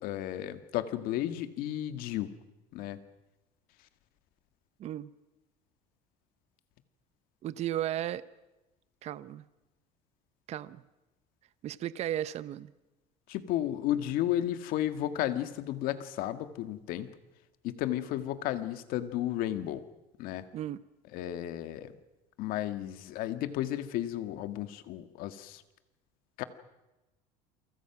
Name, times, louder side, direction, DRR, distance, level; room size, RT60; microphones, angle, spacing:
voice 1, 0.0-2.3 2.7-3.0 13.3-17.1 17.6-19.8 20.2-20.4 21.1-21.9 22.4-25.6 26.4-26.5, left 12 dB, 65° left, 10 dB, 1.8 m, -33 dB
voice 2, 4.8-5.1 7.4-8.2 9.0-9.4 10.5-10.8 11.6-12.7 20.5-20.8, right 12 dB, 45° right, 16 dB, 0.8 m, -34 dB
29.5 x 24.0 x 6.0 m, 1.0 s
cardioid pair, 135°, 16 cm